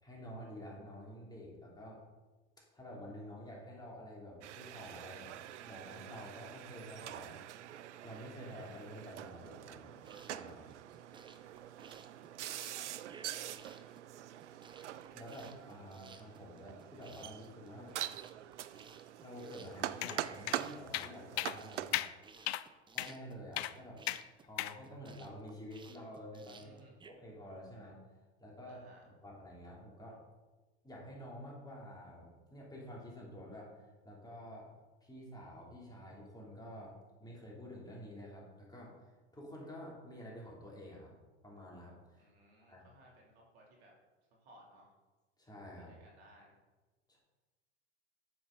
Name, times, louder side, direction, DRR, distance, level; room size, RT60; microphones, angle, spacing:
voice 1, 0.0-2.0 2.7-5.3 5.6-7.4 8.0-10.8 15.1-18.0 19.2-22.0 22.9-24.0 24.4-26.7 27.0-28.0 28.4-30.2 30.8-34.7 35.0-41.1 41.4-42.3 42.6-42.9 45.4-46.0 47.1-47.2, equal, 10° left, -3 dB, 3.2 m, -49 dB
sound 1, 4.4-22.0, right 11 dB, 85° right, 0.5 m, -45 dB
sound 2, 10.0-27.1, right 4 dB, 15° right, 0.7 m, -58 dB
voice 2, 11.9-12.6 26.5-26.9 28.7-29.0 42.1-43.9 44.3-44.9 45.8-46.6, right 1 dB, 65° right, -2 dB, 3.2 m, -62 dB
sound 3, 20.0-20.2 20.5-20.6 20.9-21.1 21.4-21.6 21.9-22.1 22.5-22.6 23.0-23.1 23.6-23.7 24.1-24.2 24.6-24.8, left 15 dB, 65° left, 0.5 m, -35 dB
9.8 x 7.1 x 4.0 m, 1.2 s
hypercardioid pair, 95°, 34 cm